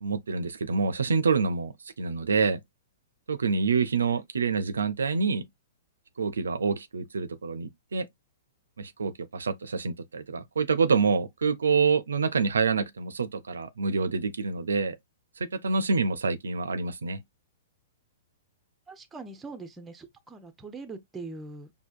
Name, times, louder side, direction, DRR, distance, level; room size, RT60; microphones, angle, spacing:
voice 1, 0.0-2.6 3.3-5.4 6.2-8.1 8.8-15.0 15.4-17.2, right 5 dB, 90° right, 0.5 m, -27 dB
voice 2, 18.9-21.7, right 3 dB, 10° right, 0.6 m, -42 dB
4.5 x 2.6 x 2.4 m
hypercardioid pair, 130°, 0 cm